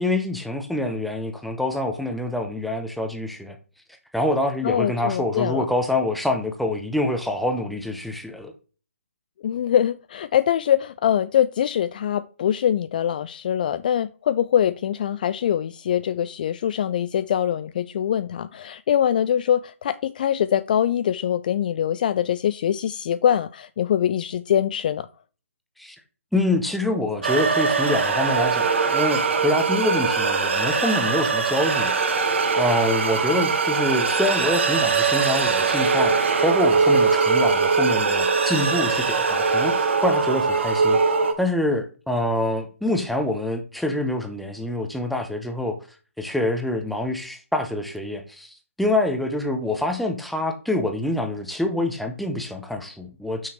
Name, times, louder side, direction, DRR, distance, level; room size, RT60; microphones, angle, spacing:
voice 1, 0.0-3.6 4.1-8.5 25.8-26.0 26.3-31.9 32.6-41.0 41.4-45.8 46.2-53.5, left 1 dB, ahead, 0.8 m, -26 dB
voice 2, 4.6-5.6 9.4-25.1, left 10 dB, 40° left, 0.3 m, -23 dB
sound 1, 27.2-41.3, right 4 dB, 55° right, 1.6 m, -21 dB
6.2 x 5.6 x 4.3 m
figure-of-eight pair, 140°, 7 cm